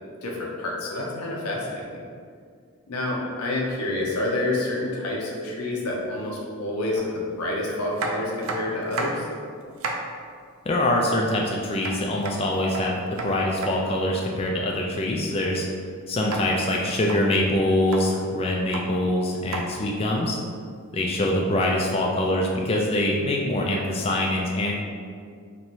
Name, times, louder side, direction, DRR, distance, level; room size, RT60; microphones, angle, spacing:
voice 1, 0.2-2.0 2.9-7.1 7.4-9.3, left 2 dB, 85° left, -2 dB, 0.7 m, -28 dB
sound 1, 6.9-7.1 7.9-9.3 9.6-10.1 11.8-13.7 16.3-16.4 16.9-17.2 17.7-18.1 18.5-18.8 19.5-19.7 20.9-21.0, right 3 dB, 65° right, 0.4 m, -32 dB
voice 2, 10.7-15.7 16.1-20.4 20.9-24.8, left 1 dB, 25° left, -1 dB, 0.3 m, -24 dB
3.0 x 2.7 x 4.5 m, 2.1 s
head